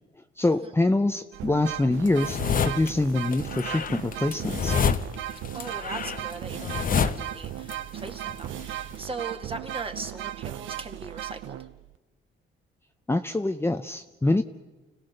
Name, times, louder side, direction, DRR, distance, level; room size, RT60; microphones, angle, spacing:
voice 1, 0.4-2.4 2.7-4.8 13.1-14.4, left 2 dB, 10° left, 6 dB, 0.8 m, -25 dB
sound 1, 1.3-12.0, right 13 dB, 75° right, 0.6 m, -37 dB
sound 2, 2.1-2.9 3.3-7.7 8.0-8.9, left 6 dB, 45° left, 1.0 m, -28 dB
voice 2, 5.5-11.6, right 3 dB, 30° right, 5 dB, 2.1 m, -39 dB
30.0 x 17.0 x 6.6 m, 1.1 s
cardioid pair, 90°, 20 cm